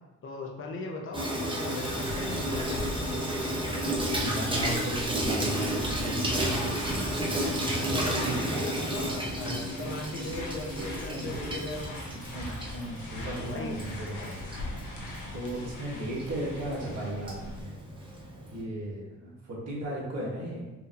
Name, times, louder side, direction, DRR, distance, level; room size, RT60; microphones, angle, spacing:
voice 1, 0.2-2.8 7.7-12.0 13.4-13.8, left 2 dB, 45° left, 0 dB, 0.7 m, -38 dB
Water tap faucet / Sink (filling or washing), 1.1-18.6, right 1 dB, 15° right, 0.8 m, -32 dB
sound 1, 1.8-17.6, left 1 dB, 80° left, 0.9 m, -41 dB
voice 2, 4.1-7.1 7.6-8.7 11.1-11.3 12.1-14.5 14.8-15.0 15.3-17.8 18.5-20.6, right 1 dB, 60° right, -5 dB, 1.4 m, -36 dB
4.3 x 2.7 x 2.6 m, 1.1 s
cardioid pair, 90°, 30 cm